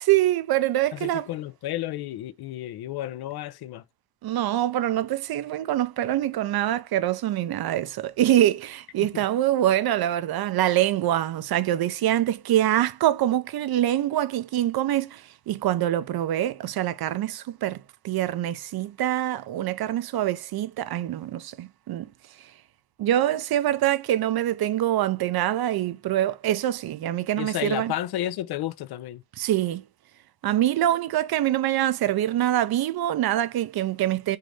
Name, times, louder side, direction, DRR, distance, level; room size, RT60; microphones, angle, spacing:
voice 1, 0.0-1.3 4.2-22.1 23.0-27.9 29.4-29.8 30.4-34.4, right 13 dB, 65° right, 0.6 m, -25 dB
voice 2, 0.9-3.8 9.1-9.2 27.4-29.2, left 13 dB, 70° left, 0.5 m, -32 dB
4.7 x 2.6 x 3.2 m
cardioid pair, 80°, 40 cm